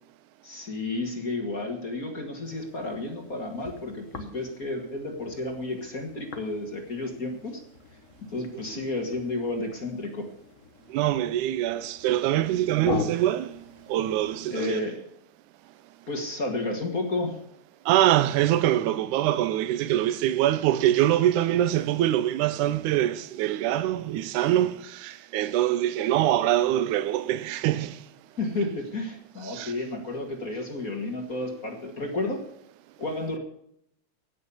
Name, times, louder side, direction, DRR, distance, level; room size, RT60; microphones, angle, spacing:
voice 1, 0.4-7.6 8.3-10.3 14.5-15.0 16.1-17.4 28.4-32.4 33.0-33.4, left 2 dB, 35° left, 1.9 m, -32 dB
sound 1, 2.4-14.5, left 5 dB, 50° left, 0.8 m, -41 dB
voice 2, 8.5-8.9 10.9-13.6 13.9-14.8 17.9-28.0 29.4-29.7, right 13 dB, 90° right, 2.2 m, -24 dB
17.0 x 6.7 x 7.0 m
omnidirectional pair, 3.4 m